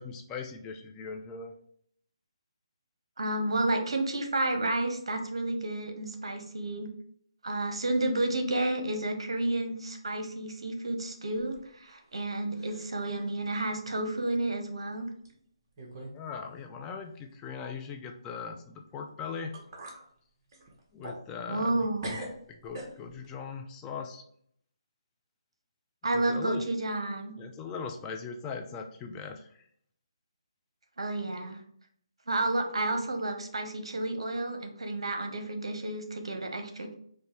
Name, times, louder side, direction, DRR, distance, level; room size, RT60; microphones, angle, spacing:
voice 1, 0.0-1.5 16.1-19.6 20.9-21.9 22.5-24.2 26.1-26.7 27.4-29.5, left 5 dB, 15° left, 4 dB, 0.4 m, -39 dB
voice 2, 3.2-6.9 7.4-15.1 21.5-22.2 26.0-27.3 31.0-31.6 32.3-36.9, right 2 dB, 75° right, 5 dB, 0.8 m, -31 dB
sound 1, 11.4-12.3 12.5-13.0 13.5-13.6 14.4-14.5 15.3-15.4 15.8-16.2 16.4-16.6 19.1-19.2 19.5-20.0 20.5-21.8 22.0-23.3, right 1 dB, 35° right, 1.0 m, -43 dB
5.0 x 2.1 x 3.1 m, 0.64 s
figure-of-eight pair, 150°, 3 cm